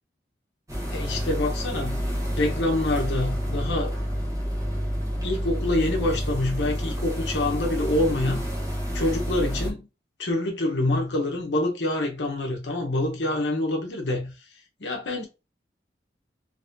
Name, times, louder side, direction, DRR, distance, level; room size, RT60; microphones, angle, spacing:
sound 1, 0.7-9.7, equal, 20° right, 1.0 m, -29 dB
voice 1, 0.9-2.1 2.4-3.9 5.2-8.4 8.9-9.9 10.2-14.3 14.8-15.3, left 2 dB, 85° left, 0.9 m, -26 dB
3.6 x 3.3 x 2.6 m
head